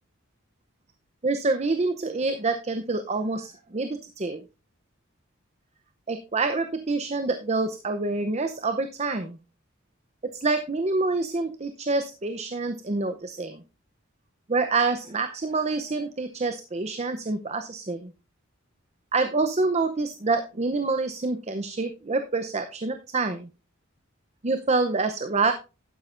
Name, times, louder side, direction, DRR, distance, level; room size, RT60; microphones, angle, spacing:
voice 1, 1.2-4.4 6.1-9.4 10.3-13.6 14.5-18.1 19.1-23.5 24.4-25.5, right 3 dB, 30° right, 8 dB, 0.7 m, -27 dB
11.5 x 9.8 x 2.6 m, 0.29 s
head